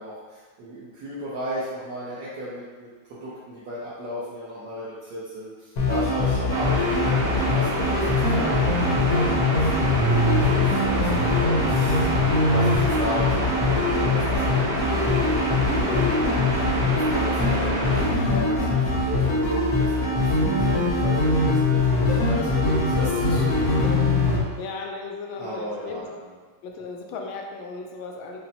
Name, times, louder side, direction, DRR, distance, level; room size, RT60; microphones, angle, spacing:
voice 1, 0.0-9.7 10.0-15.1 15.4-16.4 16.9-23.7 25.3-26.3, equal, 70° right, -10 dB, 1.4 m, -35 dB
sound 1, 5.8-24.4, left 2 dB, 60° left, 1.1 m, -22 dB
sound 2, 6.5-18.1, equal, 40° left, 0.3 m, -28 dB
voice 2, 10.8-11.2 21.3-21.6 24.6-26.0 26.6-28.4, left 4 dB, 85° left, 2 dB, 1.4 m, -36 dB
5.3 x 2.1 x 2.8 m, 1.4 s
omnidirectional pair, 2.1 m